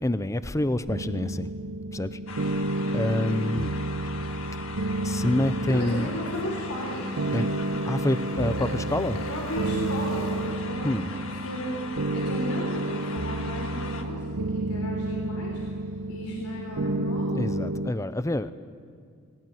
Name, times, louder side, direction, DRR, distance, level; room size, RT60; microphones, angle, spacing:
voice 1, 0.0-1.5 1.9-3.7 5.0-6.1 7.3-7.5 7.9-9.2 10.8-11.1 17.3-18.5, left 1 dB, 15° left, 13 dB, 0.6 m, -27 dB
sound 1, 0.9-17.9, right 1 dB, 70° right, 0.9 m, -30 dB
sound 2, 2.3-14.0, left 4 dB, 65° left, 1.7 m, -40 dB
voice 2, 5.7-7.7 8.6-8.7 9.3-11.8 12.1-15.6 16.1-17.4, equal, 80° left, -1 dB, 3.7 m, -35 dB
sound 3, 6.3-10.7, left 8 dB, 45° left, 4.0 m, -49 dB
20.5 x 18.5 x 9.3 m, 2.1 s
head